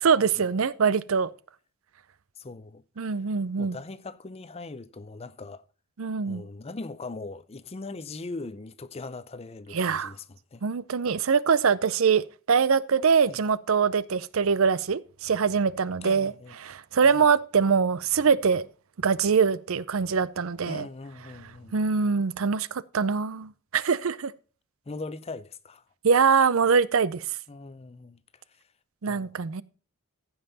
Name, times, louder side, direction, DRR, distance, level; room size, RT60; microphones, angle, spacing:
voice 1, 0.0-1.3 3.0-3.8 6.0-6.4 9.7-10.1 10.6-18.7 19.0-20.9 21.7-24.3 26.0-27.2 29.0-29.6, right 6 dB, 65° right, 0.5 m, -23 dB
voice 2, 2.4-2.8 3.6-5.6 6.3-10.6 13.3-13.4 16.0-16.6 17.0-17.3 20.6-21.8 24.9-25.8 27.5-28.2 29.1-29.3, left 3 dB, 30° left, 0.5 m, -40 dB
15.0 x 5.6 x 4.0 m
head